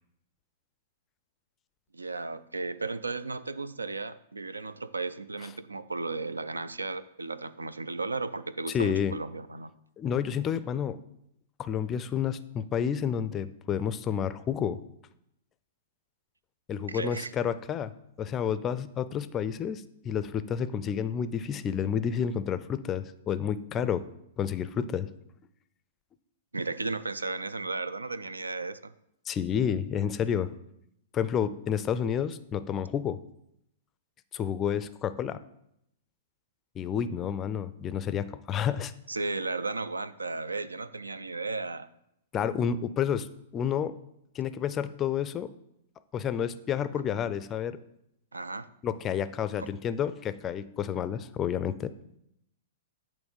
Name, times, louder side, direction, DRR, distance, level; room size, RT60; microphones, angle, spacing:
voice 1, 1.9-9.7 16.9-17.3 26.5-28.9 39.1-41.9 48.3-48.7 49.6-49.7, right 3 dB, 85° right, 15 dB, 0.3 m, -35 dB
voice 2, 8.7-9.1 10.0-11.0 11.6-14.8 16.7-17.9 18.2-24.0 24.4-25.1 29.3-30.5 31.1-33.2 34.3-35.4 36.8-38.9 42.3-43.3 43.5-43.9 44.3-45.5 46.1-47.8 48.8-51.9, left 8 dB, 25° left, 13 dB, 0.4 m, -30 dB
8.4 x 3.1 x 5.2 m, 0.79 s
figure-of-eight pair, 110°, 0 cm